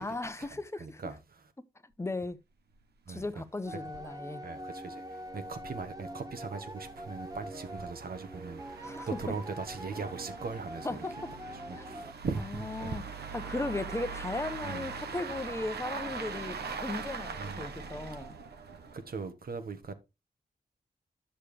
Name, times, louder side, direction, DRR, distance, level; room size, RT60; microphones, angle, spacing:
voice 1, 0.0-1.1 2.0-2.4 3.1-4.4 8.8-9.3 10.8-11.3 11.8-11.9 12.4-13.0 13.3-18.4, left 2 dB, 15° left, 0.9 m, -37 dB
voice 2, 0.8-1.4 3.1-3.2 4.4-5.0 5.3-11.0 11.7-13.2 14.6-14.9 17.4-17.6 18.9-19.9, right 4 dB, 65° right, 1.4 m, -39 dB
sound 1, 2.7-2.8 3.1-3.2 3.6-3.7 4.1-4.2 4.8-19.2, right 5 dB, 85° right, 1.0 m, -42 dB
sound 2, 3.7-12.1, right 1 dB, 25° right, 1.1 m, -44 dB
10.0 x 6.7 x 3.3 m
cardioid pair, 60°, 16 cm